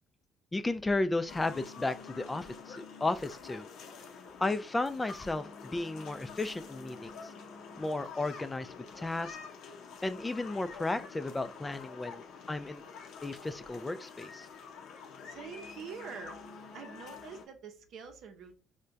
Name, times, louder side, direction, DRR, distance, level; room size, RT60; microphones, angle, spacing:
voice 1, 0.5-3.7 4.4-7.1 7.8-8.7 8.9-9.4 10.0-12.8 13.2-14.5, left 2 dB, 20° left, 0.3 m, -34 dB
sound 1, 1.3-17.5, left 5 dB, 75° left, 0.6 m, -48 dB
voice 2, 15.2-16.4 16.7-18.6, right 6 dB, 70° right, 0.6 m, -45 dB
4.3 x 2.1 x 2.5 m
supercardioid pair, 70°, 0 cm